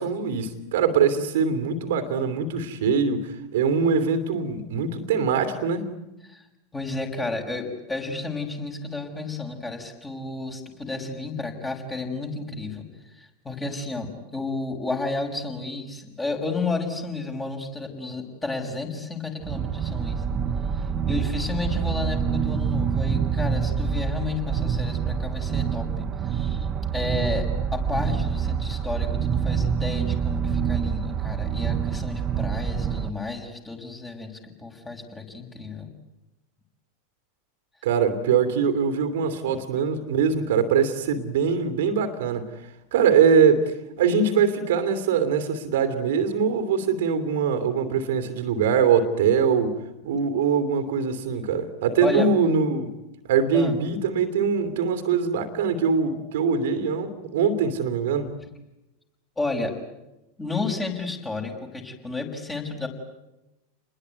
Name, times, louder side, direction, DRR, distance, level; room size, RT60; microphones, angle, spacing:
voice 1, 0.0-5.8 37.8-42.5 42.9-49.7 50.0-52.9 53.3-58.3, right 6 dB, 55° right, 10 dB, 2.9 m, -22 dB
voice 2, 6.7-12.9 13.1-20.2 20.7-26.7 26.9-35.9 39.5-39.6 52.0-52.3 53.5-53.8 59.4-59.7 60.4-62.9, left 3 dB, 15° left, 3 dB, 5.8 m, -32 dB
sound 1, 19.4-33.1, right 7 dB, 30° right, 1.1 m, -26 dB
29.0 x 21.0 x 9.5 m, 0.97 s
figure-of-eight pair, 85°, 0 cm